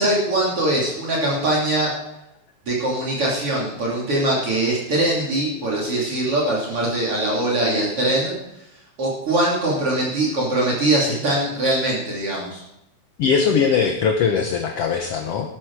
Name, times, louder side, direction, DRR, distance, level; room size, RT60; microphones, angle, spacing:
voice 1, 0.0-1.9 2.7-8.3 9.0-12.6, right 1 dB, 50° right, -5 dB, 3.8 m, -22 dB
voice 2, 13.2-15.5, left 6 dB, 65° left, 4 dB, 1.9 m, -20 dB
13.5 x 11.5 x 4.7 m, 0.87 s
omnidirectional pair, 3.4 m